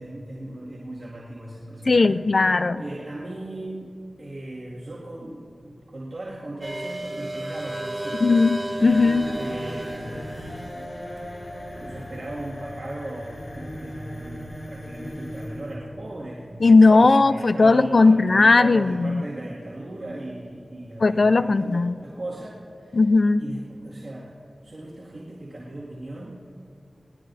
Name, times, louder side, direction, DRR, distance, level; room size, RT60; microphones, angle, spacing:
voice 1, 0.0-3.9 4.2-8.5 9.3-10.9 11.7-23.0 23.4-24.4 24.6-26.4, right 1 dB, 55° right, -7 dB, 2.2 m, -38 dB
voice 2, 1.9-2.8 8.2-9.3 16.6-19.2 21.0-22.0 22.9-23.4, left 3 dB, 60° left, 12 dB, 0.4 m, -17 dB
sound 1, 6.6-13.5, right 1 dB, 25° right, 2.2 m, -35 dB
sound 2, 8.8-18.4, equal, 80° left, 3.7 m, -39 dB
22.5 x 18.5 x 2.8 m, 2.6 s
wide cardioid pair, 55°, 0 cm